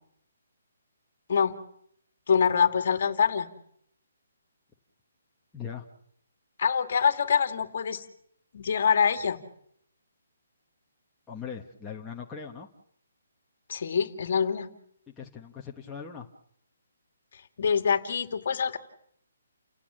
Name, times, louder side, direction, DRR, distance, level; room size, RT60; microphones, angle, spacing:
voice 1, 2.3-3.5 6.6-8.0 8.5-9.4 13.7-14.7 17.6-18.8, left 6 dB, 45° left, 8 dB, 2.1 m, -25 dB
voice 2, 5.5-5.9 11.3-12.7 15.1-16.3, left 7 dB, 5° left, -2 dB, 1.0 m, -40 dB
30.0 x 17.0 x 7.5 m, 0.69 s
hypercardioid pair, 175°, 0 cm